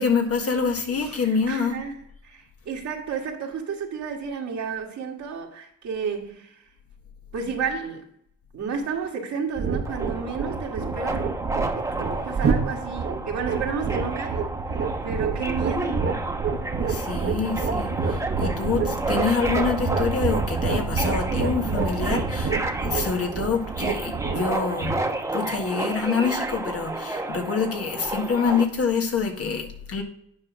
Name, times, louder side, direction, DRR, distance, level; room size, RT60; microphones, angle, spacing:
voice 1, 0.0-1.8 16.9-25.0 25.3-30.0, left 5 dB, 50° left, 3 dB, 1.7 m, -26 dB
voice 2, 1.0-6.5 7.3-8.0 8.5-11.2 11.7-16.1, right 5 dB, 65° right, 1 dB, 2.1 m, -32 dB
sound 1, 9.6-26.0, right 5 dB, 45° right, 1.3 m, -28 dB
Subway metro underground, 9.8-28.6, right 2 dB, 10° right, 1.0 m, -31 dB
9.5 x 3.9 x 6.2 m, 0.71 s
cardioid pair, 90°, 30 cm